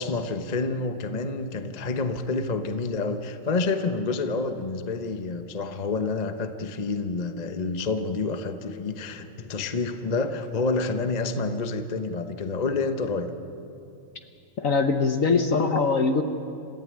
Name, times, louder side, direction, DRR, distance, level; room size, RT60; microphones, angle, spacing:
voice 1, 0.0-13.3, left 3 dB, 35° left, 8 dB, 0.7 m, -28 dB
voice 2, 14.6-16.2, left 4 dB, 50° left, 7 dB, 1.1 m, -22 dB
27.5 x 14.5 x 9.6 m, 2.7 s
omnidirectional pair, 2.3 m